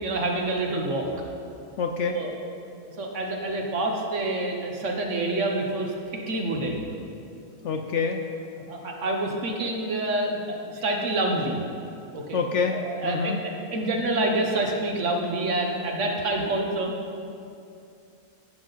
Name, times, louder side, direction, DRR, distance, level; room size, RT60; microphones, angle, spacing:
voice 1, 0.0-1.2 2.0-2.3 3.0-5.9 6.3-6.9 8.7-11.6 12.1-12.4 12.7-16.9, right 2 dB, 55° right, 1 dB, 1.3 m, -27 dB
voice 2, 1.8-2.2 7.6-8.2 12.3-13.4, left 5 dB, 65° left, 4 dB, 0.8 m, -26 dB
15.0 x 6.1 x 4.0 m, 2.5 s
omnidirectional pair, 1.5 m